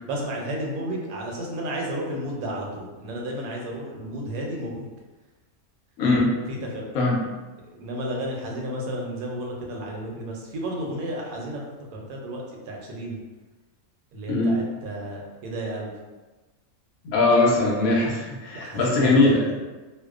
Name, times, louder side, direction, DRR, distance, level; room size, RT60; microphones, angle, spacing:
voice 1, 0.0-4.9 6.5-6.8 7.7-11.6 12.1-13.2 14.1-15.9 18.5-19.3, right 1 dB, 75° right, -1 dB, 1.0 m, -32 dB
voice 2, 6.0-6.3 6.9-7.2 14.3-14.6 17.0-19.5, left 2 dB, 80° left, -3 dB, 1.0 m, -20 dB
2.6 x 2.1 x 2.3 m, 1.2 s
omnidirectional pair, 1.5 m